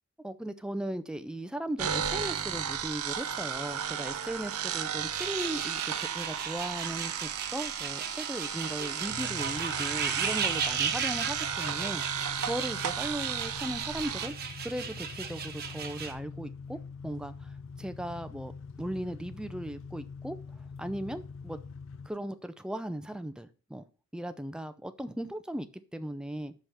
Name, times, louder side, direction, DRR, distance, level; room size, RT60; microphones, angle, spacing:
voice 1, 0.2-14.3 14.6-16.8 17.0-18.5 18.8-20.4 20.8-21.6 22.1-23.8 24.1-26.5, right 1 dB, 5° right, 10 dB, 0.4 m, -37 dB
sound 1, 1.8-14.3, right 8 dB, 75° right, 0.8 m, -34 dB
sound 2, 5.2-16.1, right 6 dB, 45° right, 1.1 m, -37 dB
sound 3, 9.1-22.1, left 5 dB, 60° left, 0.5 m, -44 dB
6.2 x 5.5 x 5.6 m, 0.37 s
head